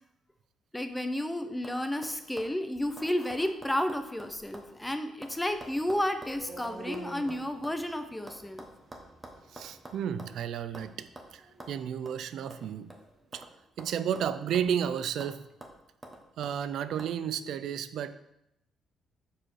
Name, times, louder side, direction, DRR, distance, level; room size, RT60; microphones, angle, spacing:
voice 1, 0.7-8.7, left 1 dB, 10° left, 8 dB, 0.7 m, -32 dB
sound 1, 0.9-1.3 1.6-1.8 2.0-4.7 5.0-7.8 8.3-10.4 10.7-10.9 11.2-11.3 11.6-11.7 12.1-12.2 12.5-13.5 13.8-14.8 15.2-15.3 15.6-16.6 17.0-17.1, right 1 dB, 15° right, 1.2 m, -48 dB
sound 2, 5.3-13.3, right 1 dB, 35° right, 1.5 m, -50 dB
voice 2, 9.5-12.9 13.3-13.5 13.8-15.4 16.4-18.1, right 9 dB, 75° right, 13 dB, 0.4 m, -32 dB
6.2 x 4.9 x 4.5 m, 0.82 s
cardioid pair, 90°, 0 cm